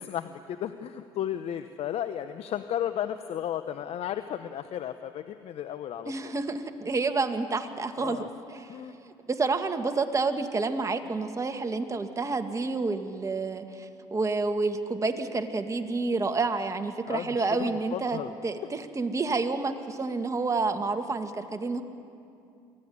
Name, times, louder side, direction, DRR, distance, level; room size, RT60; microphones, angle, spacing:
voice 1, 0.0-6.3 8.0-8.3 8.7-9.0 17.1-18.3, left 10 dB, 60° left, 10 dB, 0.9 m, -34 dB
voice 2, 6.1-8.7 9.3-21.8, right 3 dB, 25° right, 7 dB, 1.9 m, -29 dB
24.0 x 16.0 x 9.6 m, 2.6 s
supercardioid pair, 75°, 12 cm